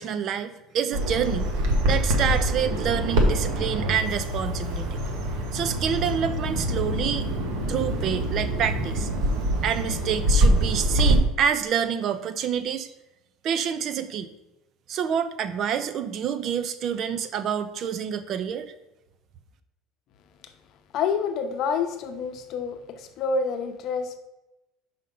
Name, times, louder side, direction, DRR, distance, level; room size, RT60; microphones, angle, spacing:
voice 1, 0.0-1.5 1.9-5.0 5.5-7.3 7.7-9.1 9.6-12.9 13.4-14.3 14.9-18.7, right 8 dB, 45° right, 11 dB, 0.5 m, -27 dB
Bird vocalization bird call bird song, 0.9-11.2, right 1 dB, 80° right, 1.2 m, -25 dB
voice 2, 20.9-24.2, left 5 dB, 50° left, 6 dB, 0.8 m, -28 dB
5.5 x 5.1 x 5.3 m, 0.96 s
cardioid pair, 145°, 0 cm